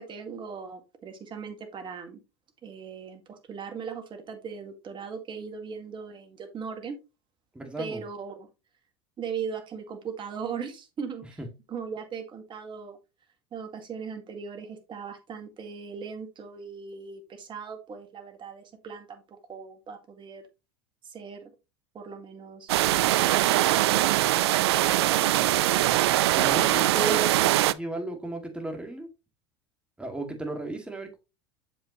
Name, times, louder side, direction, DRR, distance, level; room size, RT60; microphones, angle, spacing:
voice 1, 0.0-2.2 2.6-7.0 7.8-8.5 9.2-11.4 11.7-13.0 13.5-20.4 21.0-21.5 21.9-22.7 27.1-27.3, right 6 dB, 35° right, 1.8 m, -39 dB
voice 2, 7.5-8.0 26.3-29.1 30.0-31.2, right 1 dB, 5° right, 2.1 m, -34 dB
sound 1, 22.7-27.7, right 15 dB, 80° right, 0.4 m, -22 dB
7.2 x 5.5 x 3.0 m
hypercardioid pair, 90°, 14 cm